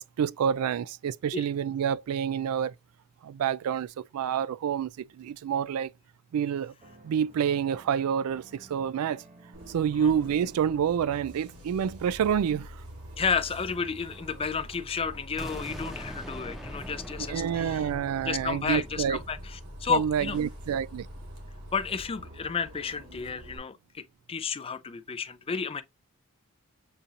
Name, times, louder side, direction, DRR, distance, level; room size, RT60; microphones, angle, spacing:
voice 1, 0.0-2.7 3.2-5.9 6.3-6.7 7.0-9.2 9.7-12.8 17.2-19.2 19.9-21.1, right 8 dB, 70° right, 0.3 m, -28 dB
sound 1, 6.8-12.4, right 2 dB, 30° right, 0.8 m, -55 dB
Bus, 9.5-23.6, equal, 90° right, 1.7 m, -45 dB
voice 2, 13.2-17.9 18.3-20.4 21.7-24.0 24.3-25.8, left 6 dB, 25° left, 0.4 m, -32 dB
sound 2, 15.4-21.2, equal, ahead, 0.8 m, -43 dB
6.7 x 2.5 x 2.8 m
head